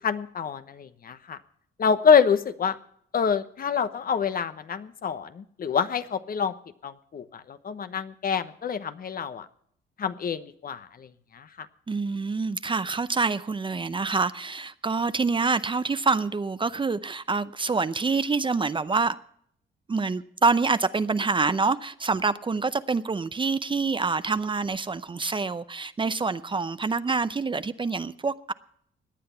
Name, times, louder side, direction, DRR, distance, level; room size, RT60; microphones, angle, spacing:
voice 1, 0.0-1.4 1.8-2.8 3.1-6.5 6.8-9.5 10.0-11.7, left 6 dB, 45° left, 1.0 m, -26 dB
voice 2, 11.9-19.2 19.9-28.5, right 4 dB, 25° right, 0.6 m, -26 dB
17.5 x 10.0 x 5.7 m
cardioid pair, 90°, 20 cm